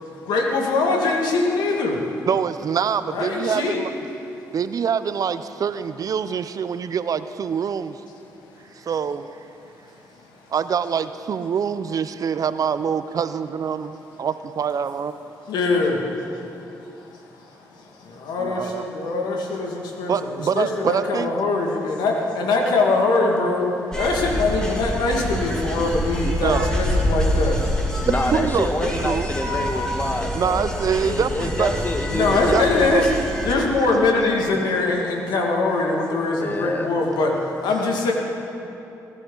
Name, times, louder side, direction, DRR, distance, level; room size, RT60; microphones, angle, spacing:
voice 1, 0.3-2.1 3.1-3.8 15.5-16.1 16.6-28.0 32.1-33.1 33.5-38.1, left 3 dB, 75° left, 0 dB, 2.0 m, -23 dB
voice 2, 2.3-3.9 4.5-8.0 8.7-9.3 10.5-15.3 18.4-18.8 20.1-21.3 26.2-26.7 28.1-29.3 30.3-31.9 32.3-33.1, right 7 dB, 55° right, 12 dB, 0.6 m, -25 dB
sound 1, 23.9-33.5, equal, 10° left, 3.0 m, -26 dB
voice 3, 28.0-30.7 30.9-32.8 36.4-37.0, left 2 dB, 25° left, 6 dB, 1.4 m, -27 dB
20.0 x 10.5 x 3.9 m, 2.8 s
supercardioid pair, 55°, 7 cm